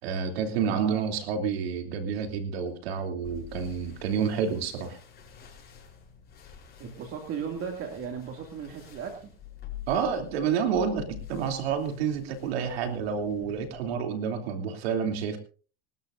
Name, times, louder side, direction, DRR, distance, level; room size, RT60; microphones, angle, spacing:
voice 1, 0.0-5.0 9.9-15.4, right 7 dB, 85° right, 5 dB, 3.1 m, -29 dB
voice 2, 0.6-1.0 6.8-9.3, right 7 dB, 45° right, 3 dB, 2.5 m, -36 dB
sound 1, 3.2-13.9, left 10 dB, 35° left, 5.7 m, -47 dB
25.5 x 13.0 x 2.6 m, 0.40 s
supercardioid pair, 115°, 30 cm